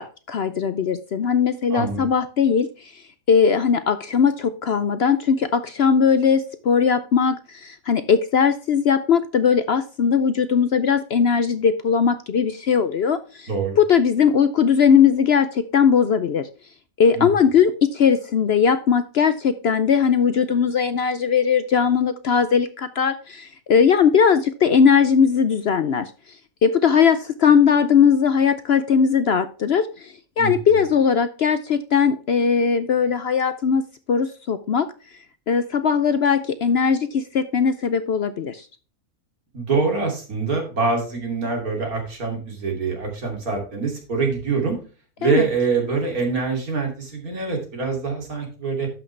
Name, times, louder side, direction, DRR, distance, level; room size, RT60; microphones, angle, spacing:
voice 1, 0.0-2.9 3.3-13.5 13.8-16.5 17.0-26.1 26.6-33.8 34.1-34.9 35.5-38.7 45.2-45.5, left 6 dB, 60° left, 12 dB, 0.7 m, -19 dB
voice 2, 1.7-2.0 13.5-13.8 17.1-17.3 30.4-30.8 39.5-44.8 45.2-48.9, right 4 dB, 75° right, 1 dB, 3.3 m, -24 dB
12.0 x 6.1 x 3.3 m, 0.36 s
omnidirectional pair, 1.5 m